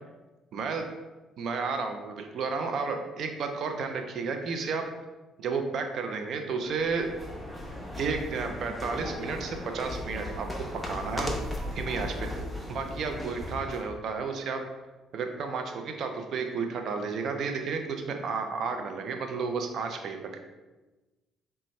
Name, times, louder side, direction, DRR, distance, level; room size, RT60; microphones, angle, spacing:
voice 1, 0.5-0.8 1.4-4.8 5.4-7.1 8.0-11.4 11.7-12.4 12.7-14.6 15.1-20.4, right 5 dB, 60° right, 5 dB, 0.5 m, -32 dB
sound 1, 6.7-13.9, left 1 dB, 10° left, 0.9 m, -37 dB
5.1 x 2.3 x 3.1 m, 1.1 s
hypercardioid pair, 60°, 0 cm